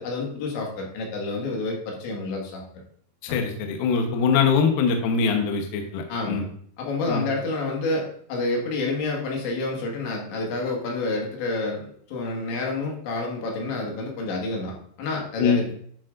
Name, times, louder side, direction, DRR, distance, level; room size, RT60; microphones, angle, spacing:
voice 1, 0.0-2.6 3.3-3.4 6.1-6.4 6.8-15.7, left 2 dB, 85° left, -1 dB, 4.2 m, -29 dB
voice 2, 3.2-6.4 7.1-7.3 15.4-15.6, left 5 dB, 70° left, 3 dB, 2.5 m, -23 dB
11.0 x 8.4 x 2.6 m, 0.62 s
omnidirectional pair, 5.1 m